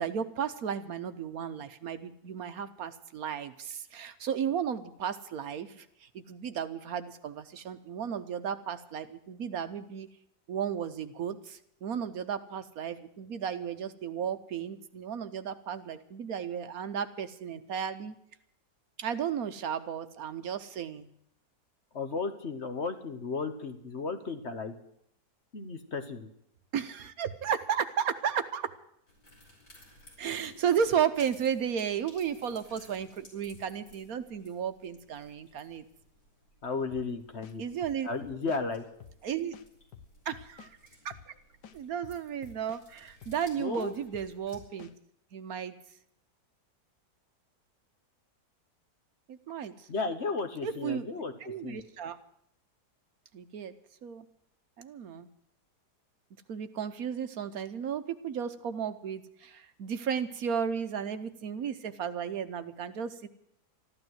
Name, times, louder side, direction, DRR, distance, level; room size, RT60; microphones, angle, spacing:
voice 1, 0.0-10.1 10.5-18.1 19.0-21.1 26.7-28.7 30.2-35.8 37.6-38.1 39.2-39.5 40.3-40.8 41.0-41.1 41.7-44.9 45.3-45.8 49.3-49.9 50.6-51.1 51.4-52.2 53.3-53.7 54.0-54.3 54.8-55.3 56.5-63.3, right 8 dB, 65° right, 11 dB, 1.2 m, -34 dB
voice 2, 21.9-24.7 25.5-26.3 36.6-37.6 38.0-38.8 43.6-43.9 49.9-51.8, left 4 dB, 45° left, 8 dB, 1.4 m, -34 dB
sound 1, 29.1-44.6, left 1 dB, 65° left, 5.5 m, -59 dB
sound 2, 36.9-37.1 37.4-38.6 39.0-39.2 39.5-40.7 41.1-41.3 41.6-42.8 43.2-43.4 43.7-44.9, left 8 dB, 85° left, 1.5 m, -50 dB
14.0 x 12.0 x 7.9 m, 0.72 s
omnidirectional pair, 1.8 m